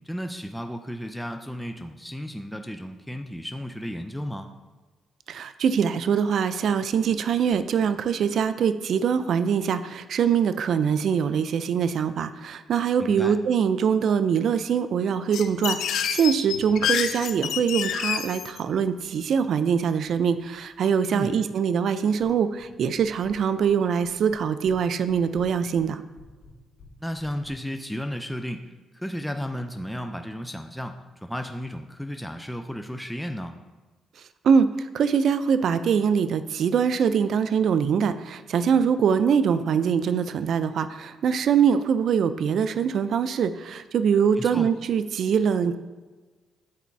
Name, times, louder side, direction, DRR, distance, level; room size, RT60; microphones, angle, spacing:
voice 1, 0.0-4.5 13.0-13.4 21.1-21.4 27.0-28.7 28.9-33.5 44.3-44.7, equal, ahead, 5 dB, 0.4 m, -33 dB
voice 2, 5.3-26.0 34.4-45.7, right 7 dB, 65° right, 12 dB, 0.3 m, -23 dB
sound 1, 15.3-18.6, left 8 dB, 80° left, 0.5 m, -28 dB
sound 2, 22.2-22.7 23.0-23.7 24.0-24.8 25.1-27.6, left 3 dB, 45° left, 2.2 m, -50 dB
8.5 x 4.0 x 4.6 m, 1.3 s
cardioid pair, 90°, 0 cm